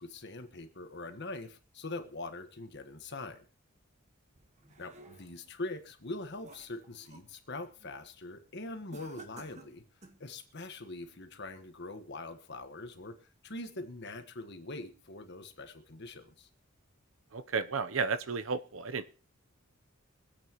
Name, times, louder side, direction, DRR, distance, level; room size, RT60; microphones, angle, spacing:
voice 1, 0.0-3.4 4.8-9.8 10.2-16.5, left 2 dB, 55° left, 7 dB, 1.5 m, -43 dB
sound 1, 4.4-5.5 6.0-7.3 7.7-8.0 8.9-10.3, right 2 dB, 35° right, 1.5 m, -54 dB
voice 2, 17.3-19.1, right 5 dB, 70° right, 11 dB, 0.8 m, -33 dB
25.0 x 8.4 x 3.1 m, 0.36 s
head